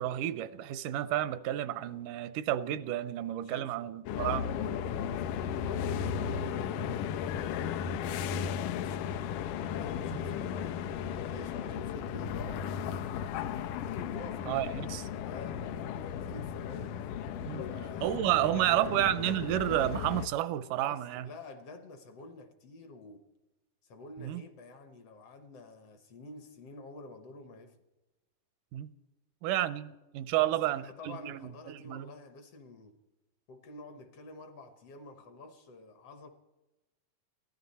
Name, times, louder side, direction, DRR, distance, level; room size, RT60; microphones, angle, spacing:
voice 1, 0.0-4.5 10.1-10.3 14.5-15.1 17.5-17.7 18.0-21.2 24.2-24.4 28.7-28.9 29.4-31.4 31.7-32.1, right 13 dB, 85° right, 2.2 m, -31 dB
voice 2, 3.4-3.8 4.1-7.1 8.0-9.0 9.7-10.8 11.3-13.3 14.1-17.0 17.7-19.0 20.8-23.2 23.8-27.8 30.4-33.0 33.5-36.3, left 2 dB, 60° left, 1.8 m, -48 dB
sound 1, 4.1-20.3, left 8 dB, 80° left, 2.2 m, -35 dB
22.0 x 15.5 x 4.2 m
omnidirectional pair, 3.7 m